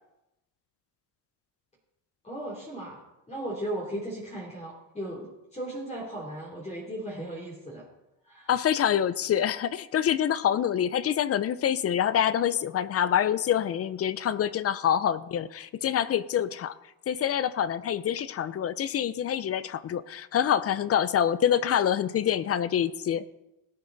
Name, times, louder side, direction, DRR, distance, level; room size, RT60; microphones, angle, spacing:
voice 1, 2.2-3.0 3.3-7.8 8.2-8.5, right 1 dB, 15° left, -4 dB, 3.2 m, -36 dB
voice 2, 8.5-16.7 17.1-23.2, left 9 dB, 35° left, 17 dB, 0.6 m, -26 dB
18.5 x 8.5 x 4.0 m, 0.93 s
cardioid pair, 120°, 40 cm